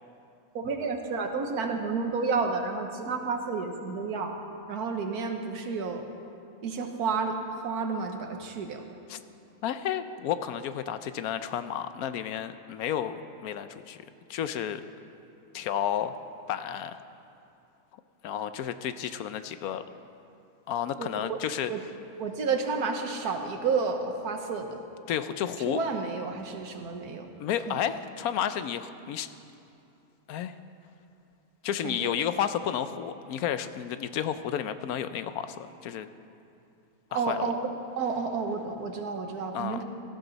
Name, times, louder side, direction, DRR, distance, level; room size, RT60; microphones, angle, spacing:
voice 1, 0.5-4.3 4.7-6.0 6.6-7.4 7.6-8.8 21.0-21.4 21.7-21.8 22.2-24.8 25.7-27.3 27.7-27.8 31.8-32.1 37.1-37.7 38.0-39.8, right 4 dB, 85° right, 5 dB, 1.6 m, -31 dB
voice 2, 9.6-14.0 14.3-14.8 15.5-16.2 16.5-17.0 18.2-19.8 20.7-21.7 25.1-25.8 27.4-29.3 30.3-30.5 31.6-36.1 37.1-37.5 39.5-39.8, left 9 dB, 75° left, 11 dB, 1.1 m, -31 dB
17.5 x 14.0 x 4.1 m, 2.6 s
omnidirectional pair, 1.6 m